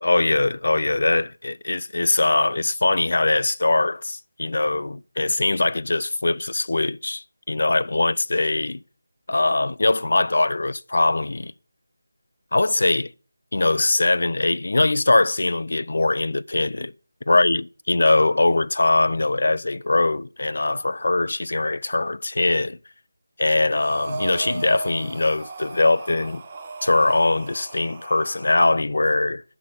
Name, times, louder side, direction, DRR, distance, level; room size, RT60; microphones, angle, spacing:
voice 1, 0.0-8.8 9.3-11.5 12.5-13.1 13.5-16.9 17.3-22.8 23.4-26.4 26.8-29.4, left 2 dB, 65° left, 0.4 m, -21 dB
Breathing, 23.7-28.7, right 3 dB, 30° right, 1.2 m, -37 dB
6.4 x 5.7 x 6.6 m
figure-of-eight pair, 165°, 0 cm